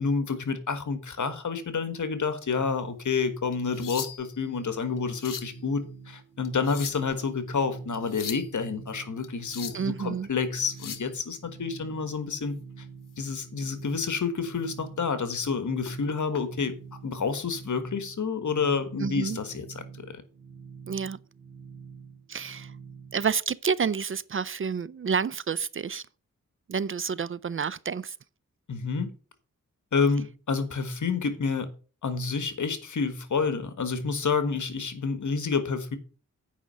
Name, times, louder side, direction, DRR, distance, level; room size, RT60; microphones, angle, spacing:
voice 1, 0.0-12.8 13.2-16.7 17.0-20.2 28.7-29.1 29.9-31.7 32.0-36.0, left 5 dB, 65° left, 1.5 m, -29 dB
sound 1, 3.5-4.4 5.0-5.6 6.4-7.2 7.9-8.5 9.2-9.9 10.6-11.1 13.2-13.3 13.8-14.1 14.5-14.7 15.8-16.4 17.5-17.7, left 8 dB, 85° left, 0.9 m, -39 dB
sound 2, 5.0-23.2, right 6 dB, 85° right, 2.3 m, -47 dB
voice 2, 9.7-10.3 19.0-19.4 20.9-21.2 22.3-22.8 23.1-26.0 26.7-28.2, right 6 dB, 40° right, 0.4 m, -29 dB
8.6 x 5.2 x 6.3 m
cardioid pair, 70°, 32 cm